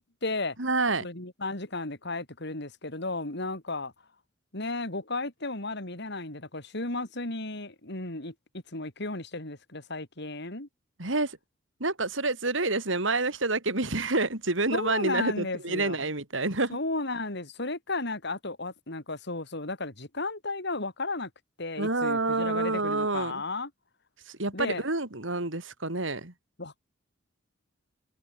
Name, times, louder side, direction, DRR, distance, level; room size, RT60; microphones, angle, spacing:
voice 1, 0.0-0.6 1.0-3.9 4.5-8.3 8.7-10.7 14.7-16.1 16.7-21.3 21.6-23.7 24.5-24.8 26.6-26.8, left 2 dB, 60° left, 4.7 m, -34 dB
voice 2, 0.6-1.1 11.0-11.4 11.8-16.8 21.8-23.4 24.3-26.3, right 3 dB, 75° right, 3.8 m, -28 dB
head